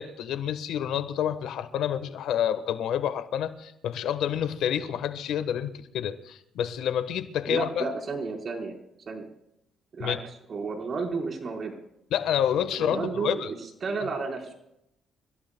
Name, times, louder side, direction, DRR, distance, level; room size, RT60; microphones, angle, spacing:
voice 1, 0.0-7.9 10.0-10.2 12.1-13.5, left 9 dB, 80° left, 10 dB, 1.2 m, -28 dB
voice 2, 7.5-8.8 9.1-9.3 9.9-10.2 10.5-11.8 12.8-14.5, right 4 dB, 50° right, 1 dB, 4.3 m, -32 dB
29.0 x 16.5 x 2.2 m, 0.82 s
cardioid pair, 90°, 0 cm